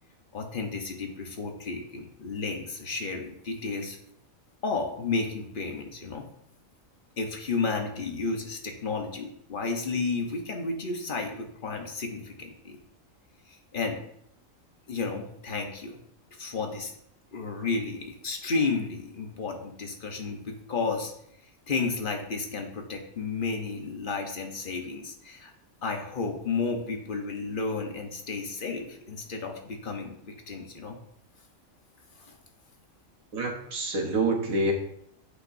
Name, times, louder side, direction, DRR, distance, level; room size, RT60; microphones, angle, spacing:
voice 1, 0.3-4.0 4.6-6.2 7.2-12.8 13.5-14.0 14.9-16.0 16.4-16.9 17.3-21.1 21.7-25.5 25.8-31.0 32.2-32.3, left 4 dB, 40° left, 3 dB, 1.2 m, -32 dB
voice 2, 33.3-34.7, right 2 dB, 90° right, 2 dB, 1.7 m, -27 dB
8.7 x 6.2 x 2.7 m, 0.71 s
omnidirectional pair, 1.4 m